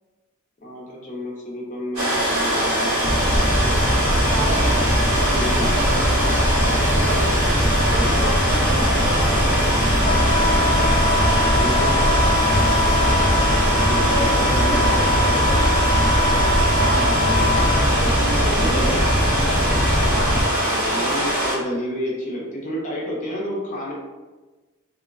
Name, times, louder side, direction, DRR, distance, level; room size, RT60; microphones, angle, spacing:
voice 1, 0.6-3.0 5.3-5.7 8.0-8.3 11.5-11.9 13.8-14.8 18.3-19.0 20.6-23.9, equal, 35° left, -4 dB, 0.6 m, -30 dB
sound 1, 2.0-21.6, right 1 dB, 80° right, 1.1 m, -22 dB
sound 2, 3.0-20.4, equal, 10° right, 0.6 m, -21 dB
voice 2, 4.3-4.8 5.6-7.3 7.9-9.5 11.2-12.3 14.0-16.1 16.7-19.6 20.1-21.2, right 1 dB, 55° right, -5 dB, 0.8 m, -32 dB
Wind instrument woodwind instrument, 10.0-17.8, left 2 dB, 15° left, 0.9 m, -24 dB
3.0 x 2.1 x 2.4 m, 1.2 s
head